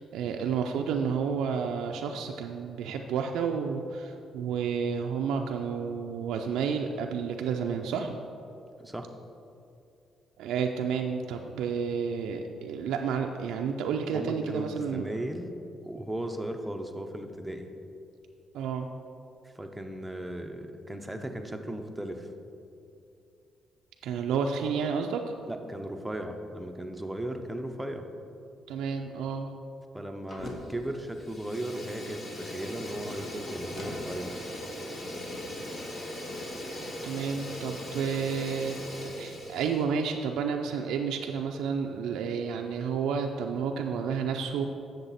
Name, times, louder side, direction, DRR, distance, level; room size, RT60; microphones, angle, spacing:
voice 1, 0.0-8.2 10.4-15.0 18.5-18.9 24.0-25.3 28.7-29.5 37.0-44.6, right 6 dB, 85° right, 3 dB, 0.4 m, -31 dB
voice 2, 8.8-9.1 14.1-15.5 15.8-17.7 19.5-22.3 25.5-28.1 29.9-34.4, right 1 dB, 10° right, 4 dB, 0.7 m, -36 dB
Fire, 30.3-30.8 31.1-39.8, left 1 dB, 45° left, 1.4 m, -39 dB
7.8 x 6.6 x 4.1 m, 2.7 s
cardioid pair, 90°, 0 cm